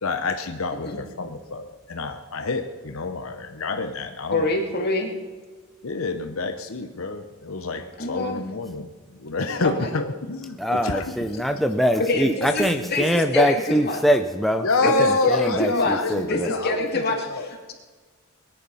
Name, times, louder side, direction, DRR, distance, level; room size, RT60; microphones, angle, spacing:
voice 1, 0.0-4.5 5.8-8.9 9.2-11.3 13.1-13.5 14.6-17.0 17.3-17.5, left 3 dB, 75° left, 7 dB, 0.9 m, -28 dB
voice 2, 4.3-5.1 8.0-8.4 9.8-9.9 12.0-14.0 14.8-16.0 16.3-17.7, left 2 dB, 50° left, 1 dB, 2.5 m, -25 dB
voice 3, 10.6-14.7 15.0-16.5, equal, ahead, 6 dB, 0.5 m, -23 dB
21.0 x 10.5 x 5.6 m, 1.5 s
head